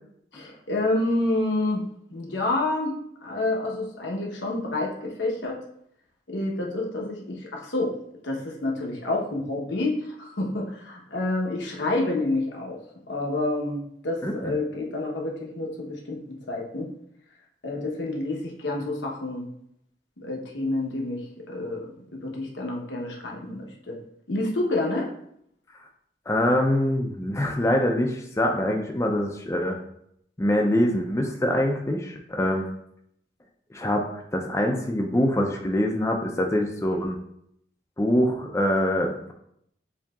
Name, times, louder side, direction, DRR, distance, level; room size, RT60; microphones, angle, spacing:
voice 1, 0.3-1.8 2.1-5.6 6.3-8.0 8.2-12.8 13.1-16.2 16.5-16.9 17.6-19.4 20.2-21.9 22.2-24.0 24.3-25.1, left 2 dB, 85° left, -1 dB, 0.9 m, -28 dB
voice 2, 14.2-14.5 26.3-29.8 30.4-32.7 33.7-34.0 34.3-37.2 38.0-39.3, left 1 dB, 15° left, 1 dB, 0.4 m, -24 dB
7.0 x 2.8 x 2.3 m, 0.72 s
head